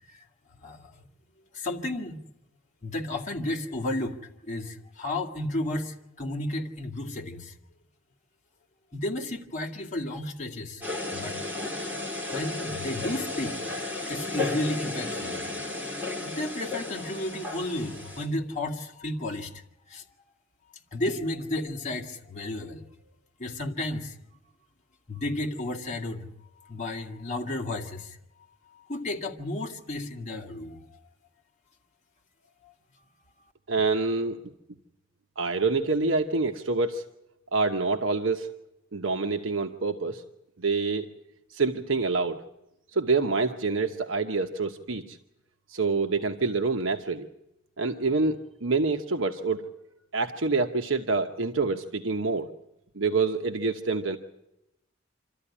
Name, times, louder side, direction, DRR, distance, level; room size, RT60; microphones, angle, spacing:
voice 1, 0.6-1.0 1.5-2.2 2.8-4.2 4.4-7.5 8.9-10.8 11.1-11.4 12.3-13.6 14.1-15.4 15.7-15.8 16.2-20.1 20.9-22.8 23.4-24.2 25.1-26.3 26.6-28.2 28.7-31.0 32.6-32.7, left 1 dB, 35° left, 0 dB, 2.3 m, -33 dB
sound 1, 10.8-18.3, left 2 dB, 10° right, 3.6 m, -33 dB
voice 2, 33.7-34.4 35.4-37.0 37.5-38.5 38.9-40.2 40.6-41.1 41.5-42.4 42.9-45.2 45.7-47.3 47.8-49.6 50.1-52.5 52.9-54.2, right 3 dB, 75° right, 5 dB, 1.1 m, -26 dB
26.5 x 13.5 x 10.0 m, 0.89 s
head